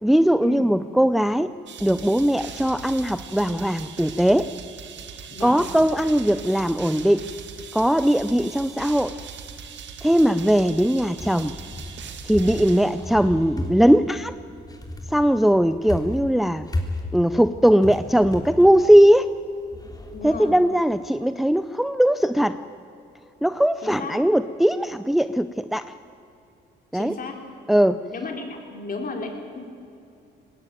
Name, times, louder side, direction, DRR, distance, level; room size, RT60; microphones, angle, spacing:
voice 1, 0.0-1.5 1.8-4.5 5.4-7.3 7.7-9.1 10.0-11.5 12.2-14.3 15.1-16.7 17.1-19.3 20.2-22.6 23.4-25.9 26.9-27.2 27.7-28.0, equal, ahead, 13 dB, 0.5 m, -19 dB
sound 1, 1.7-13.6, right 7 dB, 65° right, 2.0 m, -40 dB
voice 2, 5.3-5.6 20.1-20.6 23.8-24.2 26.9-27.4 28.1-29.6, left 3 dB, 45° left, 3 dB, 4.2 m, -34 dB
sound 2, 8.2-20.8, left 2 dB, 20° left, 3.3 m, -36 dB
19.5 x 17.0 x 9.2 m, 2.6 s
cardioid pair, 90°, 20 cm